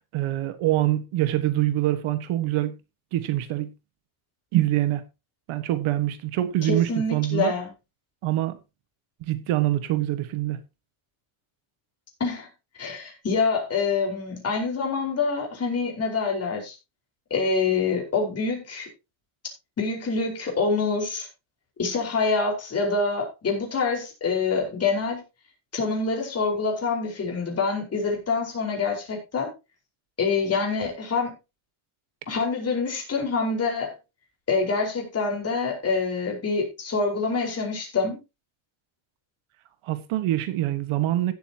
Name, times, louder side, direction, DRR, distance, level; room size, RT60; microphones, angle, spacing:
voice 1, 0.1-2.7 3.1-3.7 4.5-5.0 5.5-7.5 8.2-8.6 9.2-10.6 39.8-41.3, right 14 dB, 85° right, 1.6 m, -25 dB
voice 2, 6.6-7.7 12.2-12.5 12.8-16.7 17.3-18.9 19.8-21.3 21.8-25.2 25.7-29.5 30.2-31.3 32.3-33.9 34.5-38.2, left 4 dB, 30° left, 4.9 m, -26 dB
16.0 x 8.4 x 2.9 m
cardioid pair, 150°, 48 cm